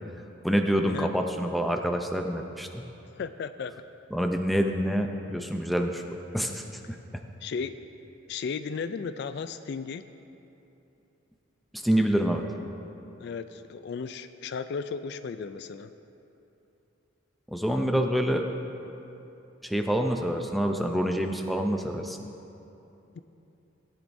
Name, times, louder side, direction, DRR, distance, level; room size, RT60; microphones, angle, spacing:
voice 1, 0.4-2.8 4.1-6.0 6.3-7.0 11.7-12.4 17.5-18.4 19.6-22.2, equal, ahead, 3 dB, 0.5 m, -27 dB
voice 2, 3.1-3.7 7.4-7.7 8.3-10.1 13.2-15.9 23.1-23.2, left 5 dB, 55° left, 11 dB, 0.3 m, -35 dB
18.0 x 10.5 x 2.7 m, 2.9 s
head